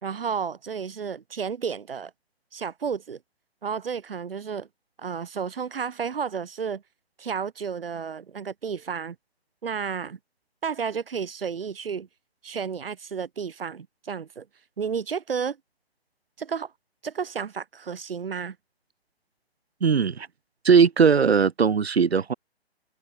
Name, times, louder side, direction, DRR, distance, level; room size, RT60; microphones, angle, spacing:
voice 1, 0.0-2.1 2.5-3.2 3.6-4.7 5.0-6.8 7.2-9.2 9.6-10.2 10.6-12.1 12.4-14.5 14.8-15.6 16.4-16.7 17.0-18.6, right 6 dB, 60° right, 5.6 m, -32 dB
voice 2, 19.8-20.3 20.6-22.3, right 6 dB, 75° right, 1.4 m, -19 dB
hypercardioid pair, 150°, 32 cm